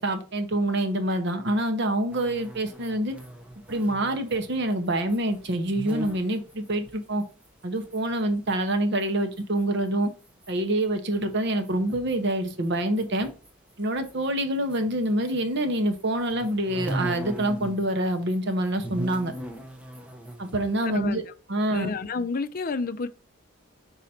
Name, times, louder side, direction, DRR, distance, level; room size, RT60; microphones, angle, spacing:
voice 1, 0.0-3.1 3.7-7.2 7.6-10.1 10.5-13.3 13.8-19.3 20.4-21.2 21.5-21.9, right 1 dB, 55° right, 1.0 m, -26 dB
sound 1, 2.1-9.1 9.3-15.3 15.6-17.8 18.1-20.9, right 1 dB, 5° right, 0.8 m, -40 dB
voice 2, 20.8-21.2 21.7-23.1, left 4 dB, 45° left, 0.5 m, -30 dB
5.4 x 4.0 x 4.3 m
head